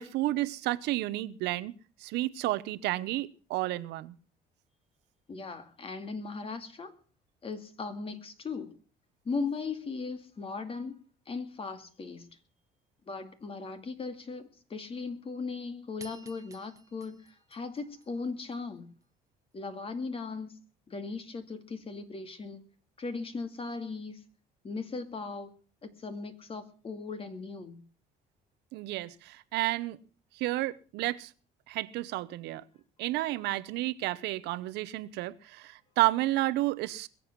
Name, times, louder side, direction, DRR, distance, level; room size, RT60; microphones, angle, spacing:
voice 1, 0.0-1.7 2.0-4.1 28.7-30.0 30.3-31.3 31.7-32.6 33.0-37.1, right 17 dB, 85° right, 1.0 m, -31 dB
voice 2, 5.3-6.9 7.4-8.8 9.2-11.0 11.3-12.3 13.1-18.9 19.5-20.5 20.9-22.6 23.0-24.2 24.6-25.5 25.8-27.8, left 4 dB, 35° left, 2.4 m, -38 dB
sound 1, 16.0-18.6, right 3 dB, 20° right, 1.4 m, -53 dB
22.0 x 7.8 x 6.1 m
cardioid pair, 110°, 17 cm